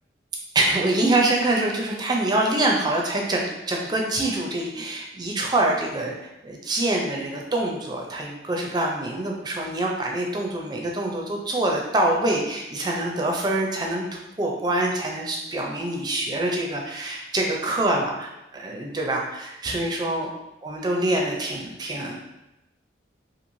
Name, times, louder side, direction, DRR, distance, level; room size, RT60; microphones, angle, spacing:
voice 1, 0.5-6.2 6.4-14.1 14.4-20.3 20.6-22.2, right 1 dB, 25° right, 0 dB, 0.4 m, -25 dB
3.0 x 2.5 x 2.6 m, 0.93 s
head